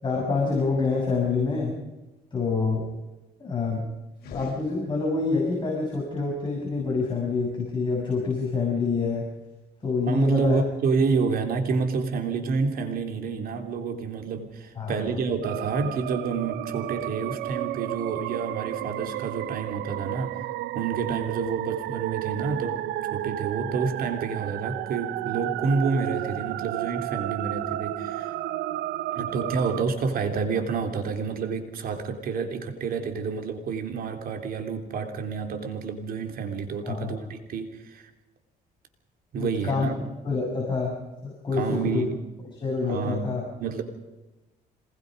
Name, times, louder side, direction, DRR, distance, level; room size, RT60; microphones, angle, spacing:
voice 1, 0.0-1.7 2.3-2.9 3.4-3.8 4.3-9.3 9.8-10.6 14.8-15.1 36.8-37.3 39.4-39.9 40.2-41.0 41.2-42.1 42.6-43.4, left 4 dB, 25° left, -2 dB, 6.8 m, -27 dB
sound 1, 4.1-5.4, left 5 dB, 65° left, 4.5 m, -43 dB
voice 2, 10.1-20.4 20.7-22.8 23.1-28.3 29.1-38.1 39.3-40.1 41.5-42.2 42.9-43.8, right 5 dB, 60° right, 5 dB, 3.2 m, -29 dB
sound 2, 15.4-29.8, right 15 dB, 85° right, 0.7 m, -32 dB
26.5 x 20.0 x 5.3 m, 1.0 s
cardioid pair, 110°, 17 cm